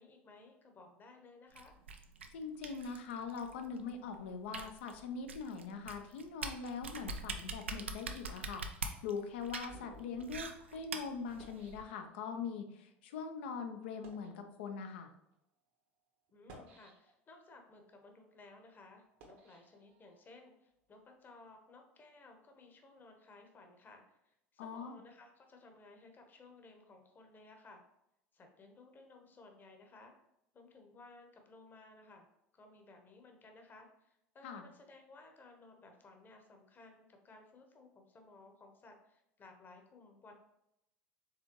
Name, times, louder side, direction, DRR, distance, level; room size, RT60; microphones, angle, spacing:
voice 1, 0.0-1.8 16.3-27.8 28.3-30.1 30.5-32.3 32.5-40.3, left 3 dB, 30° left, 4 dB, 1.0 m, -58 dB
sound 1, 1.6-11.8, right 4 dB, 85° right, 0.4 m, -44 dB
voice 2, 2.3-15.1 24.6-25.0 34.4-34.6, left 5 dB, 70° left, 6 dB, 0.6 m, -42 dB
Water Bottle Manipulation, 8.8-12.5 13.2-13.3 13.9-14.4 15.2-15.3 16.3-17.4 17.9-20.4, right 1 dB, 70° right, 1.1 m, -59 dB
4.8 x 3.6 x 3.0 m, 0.83 s
hypercardioid pair, 75°, 6 cm